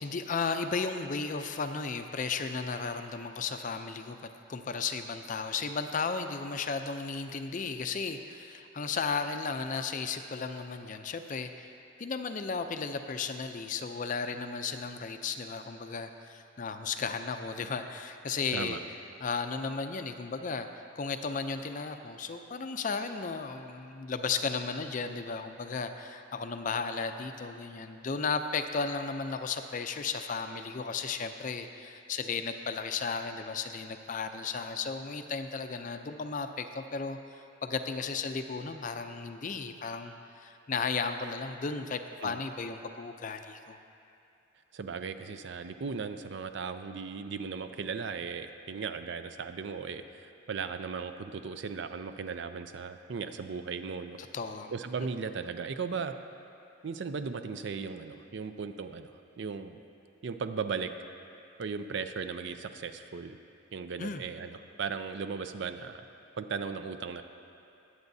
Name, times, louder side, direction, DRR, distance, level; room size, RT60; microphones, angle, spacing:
voice 1, 0.0-4.2 4.5-11.7 12.0-18.8 19.2-43.8 54.3-54.7 64.0-64.2, left 5 dB, 40° left, 7 dB, 0.4 m, -34 dB
voice 2, 44.7-54.2 54.7-56.1 56.8-59.1 59.4-59.8 60.2-60.9 61.6-63.4 63.7-66.0 66.4-67.2, right 5 dB, 60° right, 9 dB, 0.4 m, -37 dB
21.0 x 8.1 x 2.7 m, 2.7 s
head